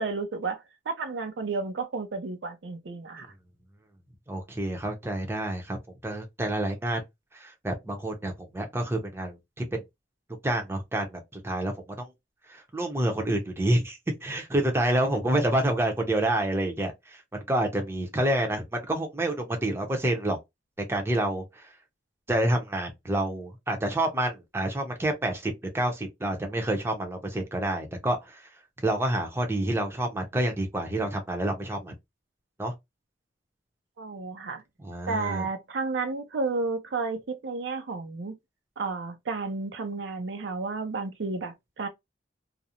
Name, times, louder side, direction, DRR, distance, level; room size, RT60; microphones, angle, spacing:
voice 1, 0.0-3.3 34.0-34.6 35.1-38.3 38.8-41.9, right 4 dB, 75° right, 0.5 m, -32 dB
voice 2, 4.3-5.8 6.0-7.0 7.3-9.8 10.4-11.7 12.0-12.1 12.5-16.9 17.3-20.4 20.9-21.6 22.3-28.4 28.8-31.9 32.6-32.7 34.8-35.5, right 1 dB, 15° right, 0.6 m, -28 dB
2.5 x 2.0 x 2.7 m
head